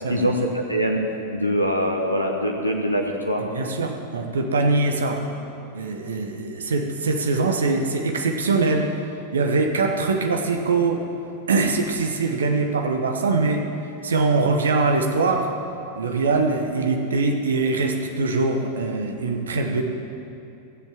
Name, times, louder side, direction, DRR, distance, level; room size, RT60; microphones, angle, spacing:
voice 1, 0.1-1.0 1.3-3.4, equal, 90° left, 1 dB, 1.1 m, -23 dB
voice 2, 3.4-5.2 5.7-9.0 9.3-11.0 11.5-13.7 14.0-15.5 15.9-19.8, right 3 dB, 70° right, 4 dB, 1.0 m, -22 dB
16.5 x 7.4 x 7.2 m, 2.7 s
figure-of-eight pair, 90°, 0 cm